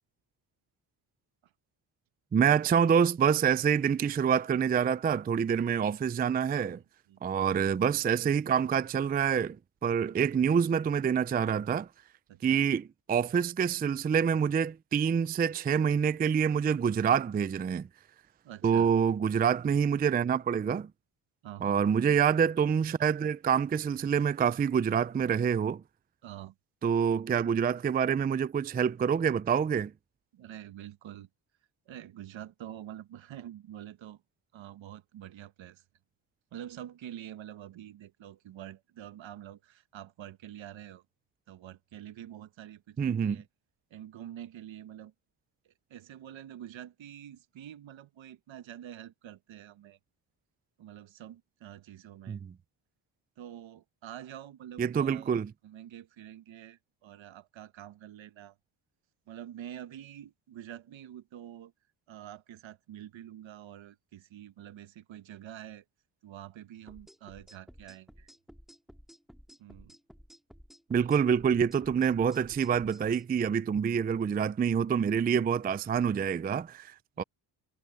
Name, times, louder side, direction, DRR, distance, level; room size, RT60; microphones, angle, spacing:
voice 1, 2.3-6.8 7.2-9.6 9.8-11.9 12.4-17.9 18.6-20.9 21.6-25.8 26.8-29.9 43.0-43.4 52.3-52.5 54.8-55.5 70.9-77.2, right 7 dB, 20° right, 0.4 m, -26 dB
voice 2, 6.6-7.4 12.3-12.7 17.0-17.2 18.4-18.9 21.4-21.8 26.2-26.5 30.3-31.3 31.9-34.2 34.5-35.8 36.5-41.0 41.5-43.5 43.9-45.1 45.6-50.0 50.8-52.4 53.4-55.3 55.6-58.6 59.3-61.7 62.1-65.8 66.2-68.3 69.6-70.0 77.2-77.3, right 11 dB, 65° right, 1.3 m, -47 dB
sound 1, 66.9-73.2, equal, ahead, 2.0 m, -54 dB
cardioid pair, 100°, 48 cm